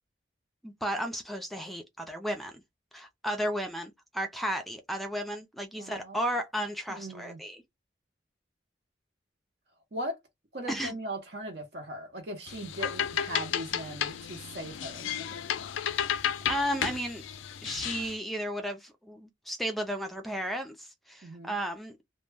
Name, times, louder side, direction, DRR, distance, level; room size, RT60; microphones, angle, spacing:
voice 1, 0.6-2.5 2.9-7.6 10.7-10.9 16.5-17.3 17.6-22.0, equal, ahead, 0.3 m, -34 dB
voice 2, 5.7-6.2 6.9-7.4 9.9-10.2 10.5-15.6 21.2-21.5, right 1 dB, 55° right, 0.7 m, -39 dB
sound 1, 12.5-18.2, left 9 dB, 80° left, 0.3 m, -33 dB
2.1 x 2.1 x 3.2 m
head